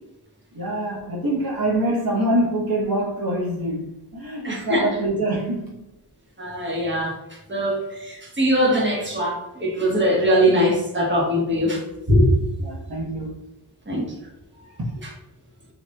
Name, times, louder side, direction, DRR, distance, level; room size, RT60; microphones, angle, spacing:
voice 1, 0.5-5.9 12.6-13.5 14.5-14.8, right 1 dB, 55° right, -4 dB, 1.2 m, -25 dB
voice 2, 4.4-4.9 6.4-12.3 13.9-14.0, equal, 25° right, -2 dB, 1.4 m, -21 dB
5.3 x 3.0 x 2.3 m, 0.93 s
cardioid pair, 50°, 41 cm